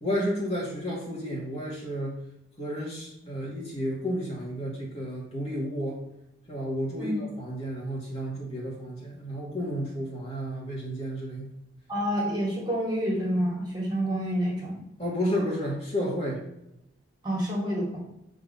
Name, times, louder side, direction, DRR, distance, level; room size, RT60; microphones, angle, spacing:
voice 1, 0.0-2.2 2.6-6.0 6.5-11.5 15.0-16.4, equal, 30° left, -3 dB, 2.3 m, -32 dB
voice 2, 11.9-14.8 17.2-18.0, equal, 20° right, -3 dB, 2.4 m, -28 dB
8.7 x 3.9 x 5.7 m, 0.86 s
head